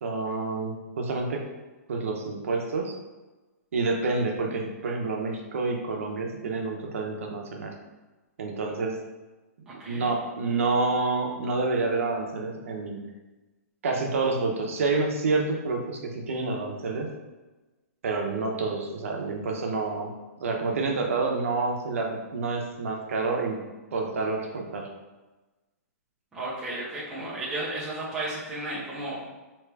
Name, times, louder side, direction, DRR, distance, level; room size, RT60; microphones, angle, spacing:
voice 1, 0.0-1.4 1.9-2.9 3.7-7.7 8.4-9.0 9.7-13.0 13.8-17.1 18.0-20.1 20.4-23.6 23.9-24.9, right 3 dB, 55° right, 1 dB, 0.8 m, -28 dB
voice 2, 9.8-10.2 26.3-29.3, right 2 dB, 5° right, -8 dB, 0.6 m, -33 dB
4.6 x 3.0 x 3.3 m, 1.2 s
hypercardioid pair, 175°, 9 cm